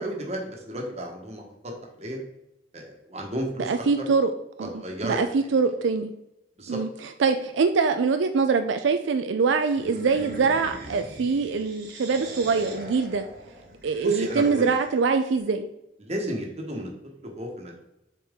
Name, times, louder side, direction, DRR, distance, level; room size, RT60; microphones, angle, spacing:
voice 1, 0.0-1.7 2.0-2.2 2.7-3.8 4.6-5.2 6.6-6.8 14.0-14.7 16.0-16.9 17.2-17.8, equal, 35° right, 1 dB, 1.3 m, -33 dB
voice 2, 3.6-4.3 4.6-6.1 6.7-13.2 13.8-15.7, right 4 dB, 80° right, 8 dB, 0.4 m, -24 dB
sound 1, 9.6-15.1, right 1 dB, 60° right, 1.4 m, -41 dB
7.3 x 4.4 x 3.6 m, 0.88 s
head